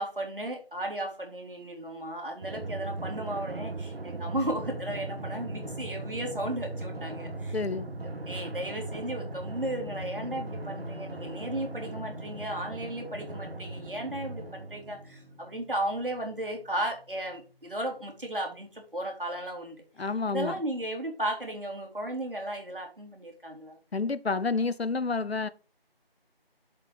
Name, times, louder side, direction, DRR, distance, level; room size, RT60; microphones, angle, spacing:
voice 1, 0.0-7.6 8.0-23.8, right 1 dB, 60° right, 3.0 m, -35 dB
Drum, 2.4-15.5, right 3 dB, 80° right, 1.1 m, -39 dB
sound 1, 4.6-18.3, left 3 dB, 65° left, 1.1 m, -47 dB
voice 2, 7.5-7.9 20.0-20.6 23.9-25.5, left 4 dB, 90° left, 0.8 m, -29 dB
7.5 x 4.7 x 5.2 m
figure-of-eight pair, 175°, 30 cm